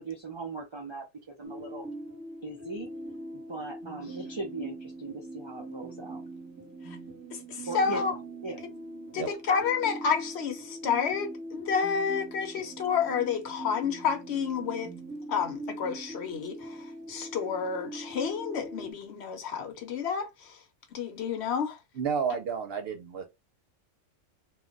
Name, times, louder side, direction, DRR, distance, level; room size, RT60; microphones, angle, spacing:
voice 1, 0.0-1.9 2.4-2.9 3.3-6.2 7.7-8.0 8.4-8.6, right 3 dB, 45° right, 0.3 m, -39 dB
sound 1, 1.4-18.9, right 2 dB, 15° right, 0.8 m, -42 dB
voice 2, 7.3-8.1 9.1-14.9 15.3-20.6 20.9-21.8, left 6 dB, 65° left, 0.9 m, -30 dB
voice 3, 21.9-23.3, right 6 dB, 60° right, 0.8 m, -31 dB
2.3 x 2.1 x 3.7 m
omnidirectional pair, 1.3 m